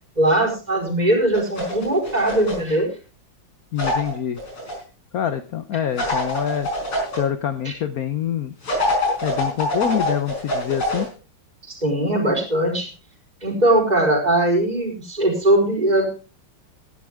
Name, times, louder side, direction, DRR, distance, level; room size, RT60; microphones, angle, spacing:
voice 1, 0.2-2.9 7.6-7.7 11.7-12.9 13.4-16.1, right 1 dB, 20° right, 1 dB, 4.5 m, -20 dB
sound 1, 1.3-2.7 3.8-4.7 6.0-7.2 8.6-11.1, left 1 dB, 80° left, 5.9 m, -25 dB
voice 2, 3.7-4.4 5.1-6.7 7.2-8.5 9.2-11.1, left 9 dB, 55° left, 10 dB, 1.1 m, -25 dB
17.0 x 11.5 x 3.6 m, 0.35 s
omnidirectional pair, 2.3 m